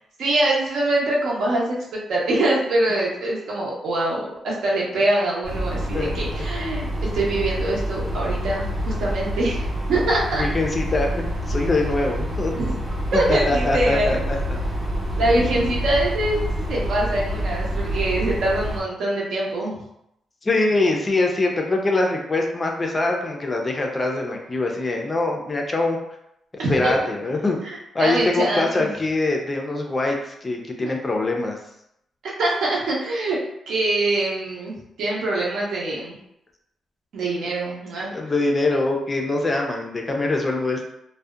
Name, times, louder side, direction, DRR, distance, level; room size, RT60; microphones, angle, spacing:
voice 1, 0.2-9.6 9.9-10.4 12.5-12.7 13.1-14.2 15.2-16.4 16.7-19.8 26.6-26.9 28.0-28.9 30.8-30.9 32.4-33.4 33.7-36.1 37.1-38.1, right 1 dB, 75° right, -3 dB, 0.7 m, -24 dB
sound 1, 5.4-18.8, equal, 35° right, 0.8 m, -27 dB
voice 2, 10.4-12.5 13.1-14.4 15.3-15.4 20.4-26.0 26.7-27.6 27.9-31.6 38.1-40.8, left 2 dB, 25° left, 2 dB, 0.3 m, -23 dB
2.6 x 2.0 x 2.3 m, 0.78 s
cardioid pair, 130°, 0 cm